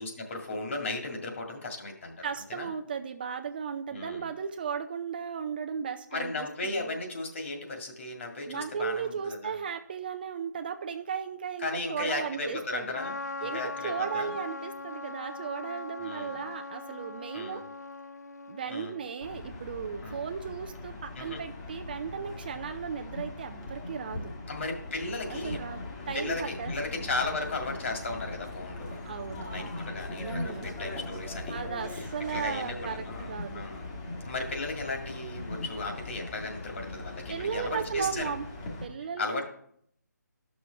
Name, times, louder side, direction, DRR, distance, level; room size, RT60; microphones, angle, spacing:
voice 1, 0.0-2.7 3.9-4.3 6.1-9.5 11.6-14.3 16.0-16.4 17.3-17.6 18.7-18.9 20.0-20.2 21.2-21.4 24.5-25.6 26.1-29.0 29.5-31.6 31.9-33.9 34.3-38.3 39.2-39.4, left 3 dB, 45° left, 1 dB, 2.0 m, -36 dB
voice 2, 2.2-7.0 8.5-12.9 13.4-17.6 18.5-24.3 25.3-26.7 29.0-29.7 30.2-30.7 31.5-33.7 37.3-38.5 38.8-39.4, right 7 dB, 30° right, 6 dB, 0.5 m, -36 dB
Trumpet, 12.9-19.1, left 3 dB, 60° left, 0.5 m, -40 dB
sound 1, 19.2-38.8, left 2 dB, 20° left, 1.3 m, -40 dB
12.5 x 6.3 x 3.4 m, 0.68 s
figure-of-eight pair, 150°, 10 cm